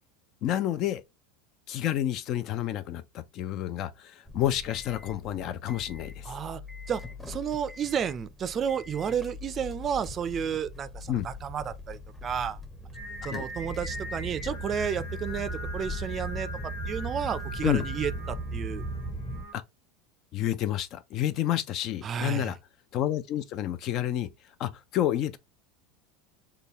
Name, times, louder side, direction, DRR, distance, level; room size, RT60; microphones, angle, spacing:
voice 1, 0.4-1.0 1.7-6.3 11.1-11.3 13.3-13.5 17.6-17.9 19.5-19.6 20.3-22.6 22.9-24.3 24.6-25.4, left 12 dB, 50° left, 0.4 m, -29 dB
sound 1, 4.3-19.5, right 1 dB, 5° left, 0.7 m, -39 dB
voice 2, 6.2-6.6 6.9-12.6 13.2-18.8 22.0-22.5, right 8 dB, 35° right, 0.4 m, -32 dB
Singing, 12.9-19.5, left 1 dB, 80° left, 1.7 m, -42 dB
3.7 x 2.2 x 2.9 m
hypercardioid pair, 105°, 0 cm